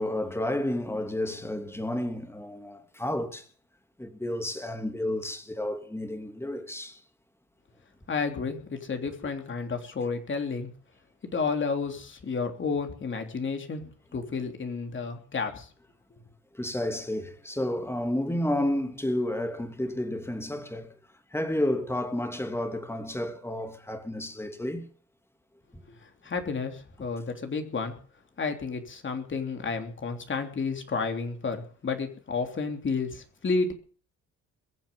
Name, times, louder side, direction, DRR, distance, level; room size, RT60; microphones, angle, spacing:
voice 1, 0.0-3.5 4.0-7.0 16.5-21.0 21.3-24.9 25.7-25.8, left 1 dB, 10° left, 2.8 m, -31 dB
voice 2, 8.1-10.7 11.2-13.8 14.1-15.7 25.9-28.0 28.4-33.7, left 4 dB, 40° left, 3.3 m, -31 dB
22.0 x 7.6 x 7.0 m
cardioid pair, 90°, 30 cm